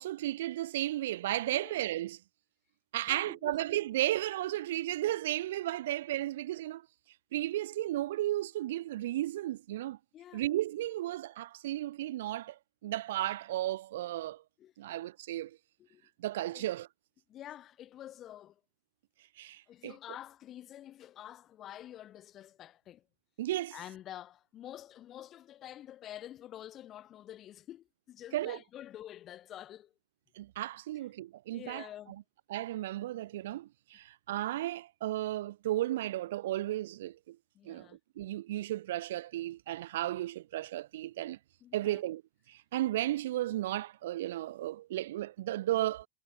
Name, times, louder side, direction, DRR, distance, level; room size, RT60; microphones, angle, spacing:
voice 1, 0.0-2.2 2.9-6.9 7.3-10.0 10.3-14.4 14.8-15.6 16.2-16.9 19.4-20.0 23.4-23.8 28.3-28.6 30.4-31.9 32.5-37.4 37.6-37.9 38.2-41.4 41.7-42.2 42.5-46.1, right 14 dB, 60° right, 0.8 m, -34 dB
voice 2, 3.1-3.5 10.1-10.4 14.6-14.7 15.8-16.0 16.5-16.7 17.3-18.5 19.7-23.0 23.7-29.9 31.5-32.2 37.5-38.0 41.6-42.0, left 12 dB, 35° left, 1.4 m, -48 dB
figure-of-eight pair, 80°, 0 cm